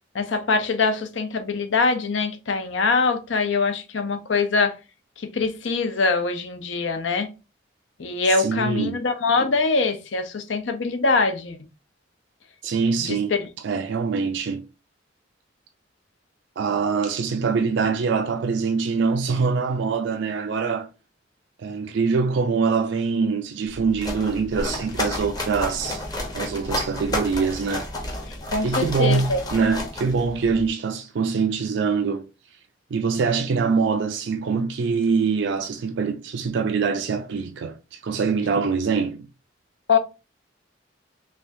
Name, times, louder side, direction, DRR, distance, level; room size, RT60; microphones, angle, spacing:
voice 1, 0.1-4.8 5.2-7.3 8.0-11.6 13.0-13.5 28.2-29.4 39.9-40.0, left 4 dB, 75° left, 0.7 m, -23 dB
voice 2, 8.4-9.0 12.6-13.3 13.6-14.7 16.6-20.9 21.6-26.0 26.3-27.9 28.6-32.2 32.9-39.3, right 5 dB, 70° right, 0.4 m, -24 dB
sound 1, 23.7-30.7, left 1 dB, 20° left, 0.8 m, -31 dB
3.4 x 3.3 x 2.6 m
head